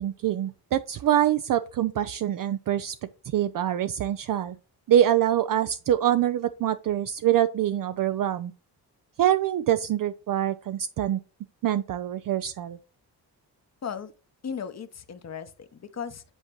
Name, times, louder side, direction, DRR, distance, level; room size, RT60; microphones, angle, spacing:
voice 1, 0.0-2.9 3.2-4.6 4.9-8.5 9.2-11.2 11.6-12.8, right 11 dB, 55° right, 0.5 m, -25 dB
voice 2, 14.4-16.2, left 7 dB, 40° left, 0.9 m, -36 dB
8.2 x 4.3 x 3.1 m
cardioid pair, 65°, 41 cm